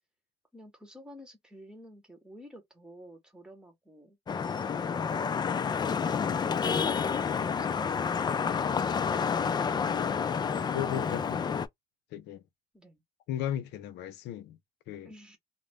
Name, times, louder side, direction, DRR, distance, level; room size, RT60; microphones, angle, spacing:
voice 1, 0.5-4.2 12.7-13.0 15.0-15.4, equal, 5° right, 1.1 m, -51 dB
Vehicle horn car horn honking / Traffic noise roadway noise, 4.3-11.7, left 6 dB, 25° left, 0.3 m, -29 dB
voice 2, 10.7-11.5 12.1-12.4 13.3-14.6 14.9-15.1, left 11 dB, 85° left, 0.6 m, -36 dB
2.5 x 2.1 x 3.3 m
cardioid pair, 110°, 17 cm